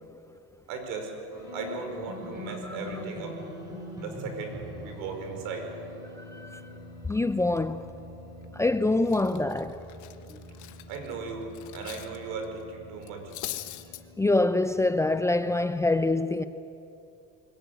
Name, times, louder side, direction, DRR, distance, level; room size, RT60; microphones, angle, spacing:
voice 1, 0.7-1.1 1.5-3.4 4.0-5.7 10.9-13.3, right 4 dB, 70° right, 5.2 m, -37 dB
sound 1, 1.3-15.7, left 1 dB, 10° right, 7.4 m, -44 dB
voice 2, 6.2-6.6 7.0-7.9 8.5-9.8 10.3-10.4 14.2-16.4, left 2 dB, 10° left, 0.5 m, -25 dB
Cutlery silverware, 8.4-8.7 9.0-12.2 12.4-12.6 13.0-14.0, left 15 dB, 60° left, 1.3 m, -41 dB
22.5 x 17.5 x 9.3 m
cardioid pair, 125°, 33 cm